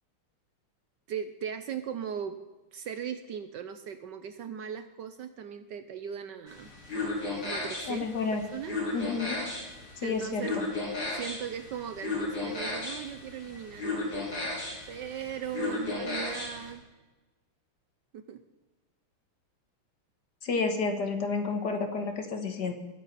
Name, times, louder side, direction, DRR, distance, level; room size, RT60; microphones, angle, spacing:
voice 1, 1.1-2.4 2.7-6.7 7.4-8.7 10.0-10.6 11.1-14.1 14.9-16.8 18.1-18.4, right 8 dB, 65° right, 10 dB, 1.2 m, -38 dB
sound 1, 6.5-16.7, left 2 dB, 75° left, 5.3 m, -35 dB
voice 2, 7.9-8.4 8.9-9.4 10.0-10.7 20.4-22.7, left 4 dB, 55° left, 6 dB, 1.9 m, -30 dB
22.0 x 9.6 x 4.2 m, 1.2 s
omnidirectional pair, 2.3 m